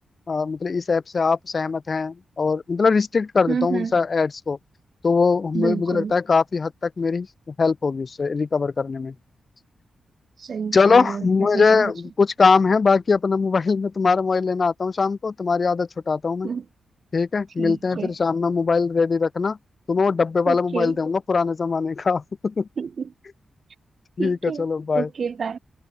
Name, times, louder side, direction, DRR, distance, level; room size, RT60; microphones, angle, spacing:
voice 1, 0.3-4.6 5.0-9.1 10.7-16.5 17.1-19.6 19.9-22.7 24.2-25.1, left 4 dB, 45° left, 0.6 m, -21 dB
voice 2, 3.5-4.0 5.5-6.1 10.4-11.3 11.5-11.9 16.4-16.7 17.6-18.1 20.5-21.0 22.8-23.1 24.2-24.7 24.9-25.6, right 6 dB, 55° right, 0.7 m, -28 dB
cardioid pair, 90°, 0 cm